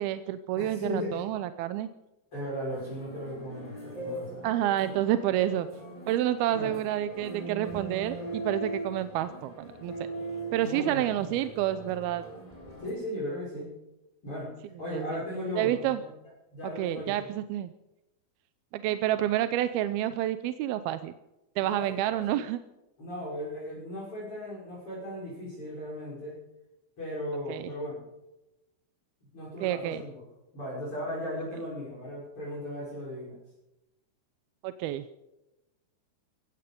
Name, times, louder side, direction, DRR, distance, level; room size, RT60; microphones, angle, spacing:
voice 1, 0.0-1.9 4.4-5.7 6.1-9.9 10.5-12.2 14.9-15.2 15.6-16.0 16.8-17.7 18.7-21.1 21.6-22.6 27.5-27.7 29.6-30.0 34.6-35.0, right 12 dB, 85° right, 11 dB, 2.6 m, -29 dB
voice 2, 0.5-1.2 2.3-4.4 6.5-6.8 10.6-11.4 12.8-13.7 14.2-14.5 14.8-16.1 16.5-17.3 21.6-22.4 23.0-26.4 27.0-28.0 29.3-30.2 30.5-33.4, equal, 35° left, -6 dB, 6.7 m, -37 dB
sound 1, 2.7-12.9, right 2 dB, 10° left, 4.6 m, -40 dB
17.0 x 15.5 x 5.3 m, 0.96 s
omnidirectional pair, 4.4 m